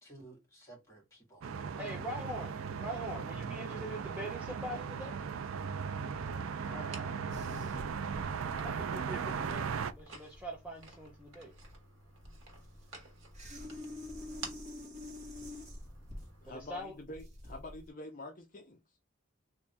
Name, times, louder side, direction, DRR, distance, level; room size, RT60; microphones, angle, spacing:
voice 1, 0.0-1.5 6.6-7.2, equal, 15° left, 1.7 m, -52 dB
sound 1, 1.4-9.9, right 6 dB, 90° right, 0.4 m, -37 dB
voice 2, 1.8-5.2 8.6-11.5 16.5-16.9, equal, 5° right, 0.6 m, -43 dB
sound 2, 4.3-16.8, right 3 dB, 75° right, 1.2 m, -53 dB
sound 3, 7.3-17.9, left 1 dB, 35° right, 1.2 m, -47 dB
voice 3, 16.4-18.8, left 1 dB, 40° left, 0.6 m, -47 dB
3.6 x 2.6 x 3.3 m
head